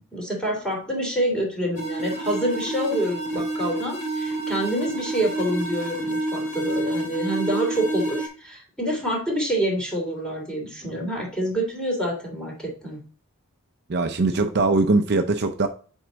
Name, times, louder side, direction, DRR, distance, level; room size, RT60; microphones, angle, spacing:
voice 1, 0.1-13.0, right 1 dB, 5° left, 3.0 m, -27 dB
sound 1, 1.7-8.3, right 1 dB, 40° left, 2.6 m, -29 dB
voice 2, 13.9-15.7, right 3 dB, 55° right, 0.6 m, -21 dB
7.8 x 4.5 x 4.0 m
head